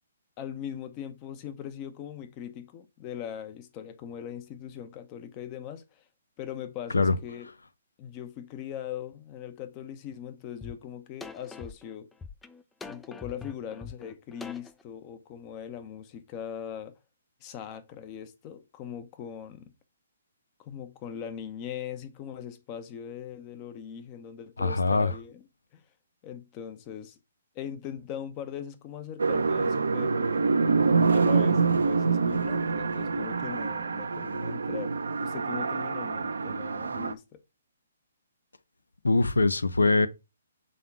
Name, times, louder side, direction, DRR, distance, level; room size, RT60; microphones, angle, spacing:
voice 1, 0.4-6.0 6.4-7.5 8.0-12.1 12.8-17.0 17.4-19.7 20.6-25.5 25.7-25.8 26.2-27.2 27.5-34.9 35.2-37.4, left 9 dB, 30° left, 0.9 m, -40 dB
sound 1, 10.6-10.7 11.2-14.8, left 5 dB, 10° left, 0.4 m, -43 dB
voice 2, 24.6-25.1 39.0-40.1, left 3 dB, 80° left, 0.6 m, -22 dB
sound 2, 29.2-37.1, right 4 dB, 70° right, 0.6 m, -26 dB
5.4 x 3.9 x 5.8 m
figure-of-eight pair, 130°, 0 cm